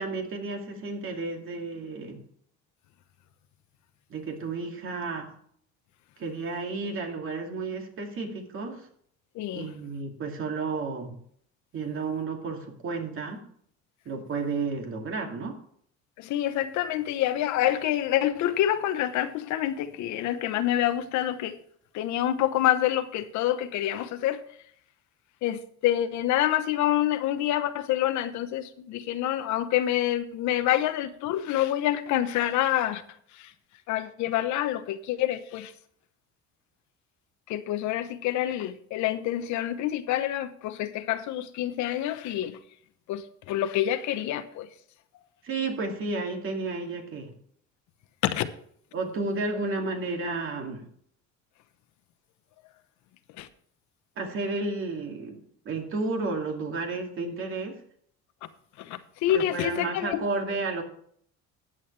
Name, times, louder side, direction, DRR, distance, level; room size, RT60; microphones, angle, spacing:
voice 1, 0.0-2.2 4.1-5.3 6.2-8.9 9.5-11.1 11.7-13.4 14.1-15.6 45.4-47.3 48.9-50.9 54.2-57.8 59.3-60.8, right 3 dB, 45° right, 2.6 m, -32 dB
voice 2, 9.3-9.7 16.2-21.6 21.9-24.4 25.4-33.0 33.3-33.5 33.9-35.7 37.5-42.6 43.1-44.7 48.2-48.5 53.4-53.5 58.4-58.5 58.8-60.2, left 12 dB, 70° left, 1.0 m, -27 dB
14.5 x 9.3 x 3.3 m
cardioid pair, 135°, 30 cm